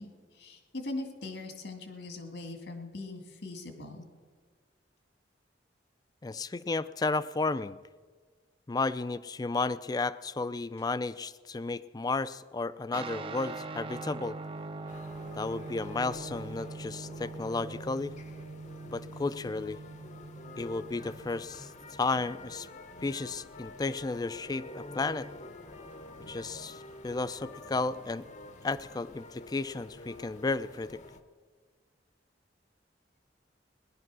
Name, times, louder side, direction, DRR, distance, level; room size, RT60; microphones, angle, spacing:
voice 1, 0.0-4.0, left 2 dB, 75° left, 6 dB, 2.0 m, -41 dB
voice 2, 6.2-7.8 8.7-14.4 15.3-18.1 18.9-19.8 20.6-21.7 22.0-22.7 23.0-25.3 26.3-28.2 28.6-31.0, left 3 dB, 20° left, 15 dB, 0.4 m, -33 dB
Guitar, 12.9-22.6, right 3 dB, 30° right, 0.5 m, -43 dB
sound 1, 14.9-31.2, left 2 dB, 40° left, 0.8 m, -48 dB
18.0 x 11.0 x 6.1 m, 1.5 s
head